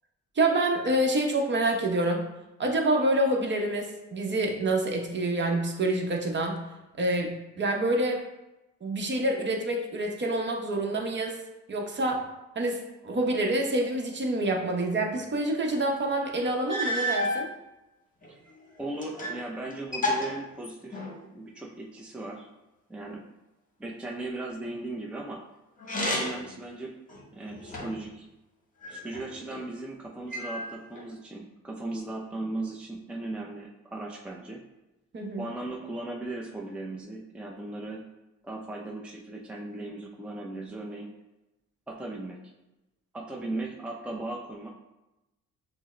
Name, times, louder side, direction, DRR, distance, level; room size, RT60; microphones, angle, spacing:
voice 1, 0.4-2.2 2.6-6.6 7.0-8.2 8.8-11.3 11.7-12.2 12.6-17.5 35.1-35.4, right 1 dB, 40° right, 2 dB, 0.8 m, -27 dB
sound 1, 16.1-16.2 16.7-17.4 18.2-19.4 19.7-21.2 25.8-26.5 27.1-28.1 28.8-29.6 30.3-31.1, left 1 dB, 25° left, 1.1 m, -32 dB
voice 2, 18.8-21.0 21.3-22.5 22.9-23.3 23.8-25.5 26.0-26.9 27.3-28.3 28.9-34.6 35.4-38.1 38.4-41.1 41.9-42.4 43.1-44.7, right 2 dB, 5° right, -1 dB, 0.5 m, -37 dB
6.0 x 2.0 x 3.2 m, 0.98 s
cardioid pair, 90°, 30 cm